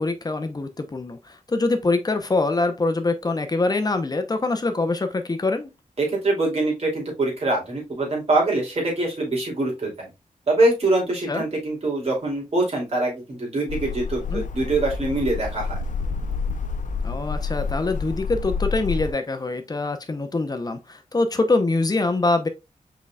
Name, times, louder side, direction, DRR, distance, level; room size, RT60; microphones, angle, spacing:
voice 1, 0.0-5.7 11.3-11.4 14.3-14.4 17.0-22.5, left 3 dB, 30° left, 0.8 m, -24 dB
voice 2, 6.0-10.1 10.5-15.7, right 2 dB, 50° right, 2.7 m, -24 dB
sound 1, 13.7-19.1, left 4 dB, 65° left, 0.6 m, -28 dB
5.3 x 4.0 x 2.3 m
wide cardioid pair, 125°, 14 cm